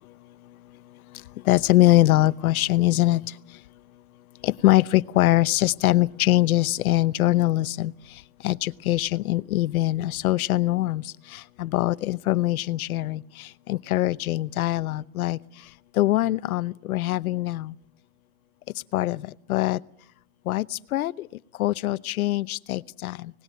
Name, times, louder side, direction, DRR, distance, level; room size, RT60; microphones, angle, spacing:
voice 1, 1.5-3.2 4.4-7.9 8.4-11.0 11.3-13.2 13.7-15.4 16.0-17.7 18.9-19.8 20.5-21.3 21.6-23.3, left 16 dB, 70° left, 17 dB, 0.9 m, -23 dB
24.5 x 19.5 x 9.3 m, 0.66 s
supercardioid pair, 165°, 44 cm